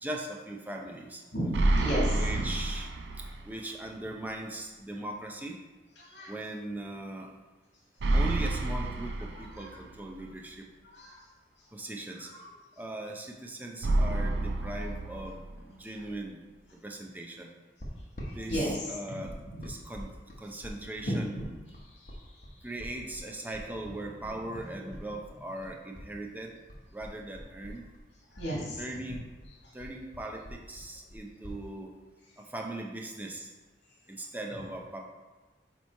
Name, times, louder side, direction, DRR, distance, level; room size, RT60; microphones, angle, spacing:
voice 1, 0.0-1.2 2.1-2.9 3.2-5.6 6.3-7.3 8.1-10.7 11.7-12.3 12.8-16.4 16.8-17.5 18.3-19.3 19.6-20.1 20.4-21.4 22.6-26.6 26.9-27.8 28.8-29.2 29.7-31.9 32.4-33.5 34.1-35.0, right 1 dB, 10° right, 0 dB, 0.5 m, -39 dB
voice 2, 1.3-2.4 6.0-6.3 9.3-9.8 10.8-11.2 12.2-12.4 18.2-19.6 21.0-21.5 21.8-22.5 28.3-28.8, equal, 75° left, -4 dB, 1.6 m, -35 dB
sound 1, 1.5-3.6 3.9-4.0 8.0-10.0 13.8-15.8, right 2 dB, 75° right, 0.5 m, -29 dB
sound 2, 17.8-26.1 26.4-28.1 28.3-31.6, equal, 45° left, 1.1 m, -44 dB
7.1 x 3.0 x 4.5 m, 1.3 s
head